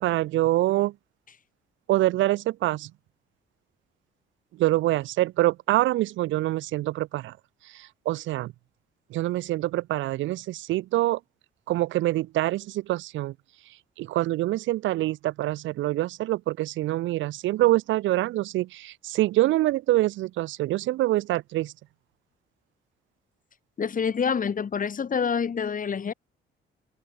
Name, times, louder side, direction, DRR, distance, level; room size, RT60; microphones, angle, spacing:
voice 1, 0.0-0.9 1.9-2.9 4.6-7.3 7.7-8.5 9.1-11.2 11.7-13.3 14.0-21.7, right 16 dB, 75° right, 0.4 m, -25 dB
voice 2, 23.8-26.1, left 6 dB, 45° left, 2.8 m, -27 dB
cardioid pair, 90°, 20 cm